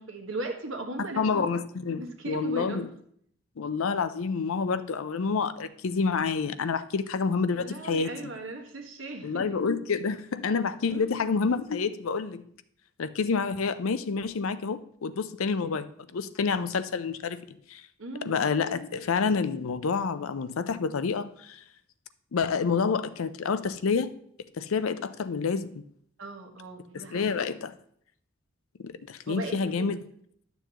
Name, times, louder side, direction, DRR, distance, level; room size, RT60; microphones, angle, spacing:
voice 1, 0.0-1.7 2.0-2.9 7.5-9.6 10.9-11.2 18.0-18.4 26.2-27.5 29.2-29.9, right 2 dB, 70° right, 4 dB, 1.3 m, -38 dB
voice 2, 1.2-2.9 3.6-8.1 9.2-12.4 13.0-17.8 18.2-21.6 22.3-24.1 24.6-25.9 26.9-27.7 28.8-30.0, left 5 dB, 80° left, 13 dB, 0.5 m, -28 dB
12.0 x 6.9 x 2.9 m, 0.66 s
head